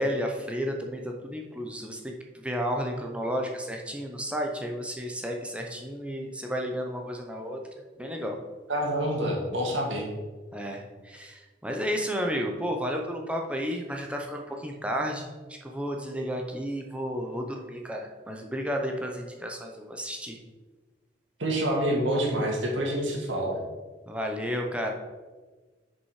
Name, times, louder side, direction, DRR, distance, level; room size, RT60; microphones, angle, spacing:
voice 1, 0.0-7.6 8.0-8.4 10.5-15.3 15.6-20.4 24.1-24.9, equal, 5° right, 1 dB, 0.7 m, -32 dB
voice 2, 8.7-10.1 21.4-23.6, right 1 dB, 80° right, -1 dB, 1.9 m, -27 dB
6.5 x 5.3 x 4.9 m, 1.3 s
head